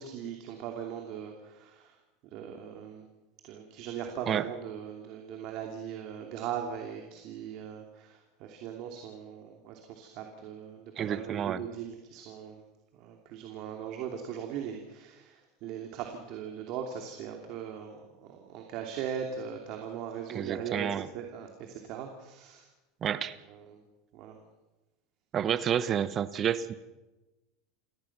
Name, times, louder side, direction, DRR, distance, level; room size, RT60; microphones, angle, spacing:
voice 1, 0.0-2.0 2.3-3.1 3.4-12.6 12.9-20.9 21.1-22.7 23.1-23.2 23.5-23.8 24.1-24.4, right 8 dB, 55° right, 3 dB, 2.9 m, -39 dB
voice 2, 11.0-11.6 20.3-21.1 23.0-23.4 25.3-26.7, right 9 dB, 35° right, 15 dB, 1.1 m, -29 dB
28.5 x 18.0 x 6.1 m, 1.1 s
supercardioid pair, 130°, 0 cm